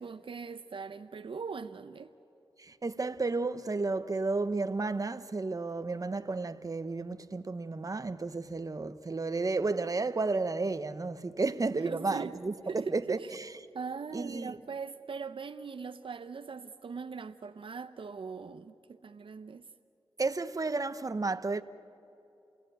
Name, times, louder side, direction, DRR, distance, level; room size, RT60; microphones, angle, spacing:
voice 1, 0.0-2.1 11.8-12.4 12.7-13.3 13.7-19.7, right 5 dB, 65° right, 0.7 m, -40 dB
voice 2, 2.6-13.2 14.1-14.6 20.2-21.6, right 3 dB, 35° right, 1.0 m, -32 dB
29.5 x 18.5 x 9.2 m
cardioid pair, 65°, 10 cm